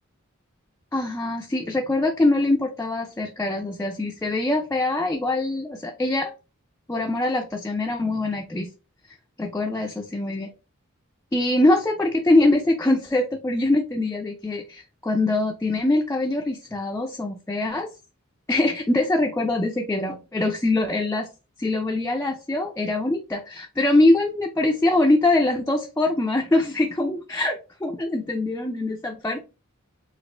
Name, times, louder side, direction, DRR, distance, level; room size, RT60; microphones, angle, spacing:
voice 1, 0.9-6.3 6.9-8.7 9.4-10.5 11.3-17.9 18.5-21.3 21.6-29.5, left 2 dB, 10° left, 1 dB, 0.4 m, -23 dB
4.1 x 2.5 x 3.2 m, 0.30 s
head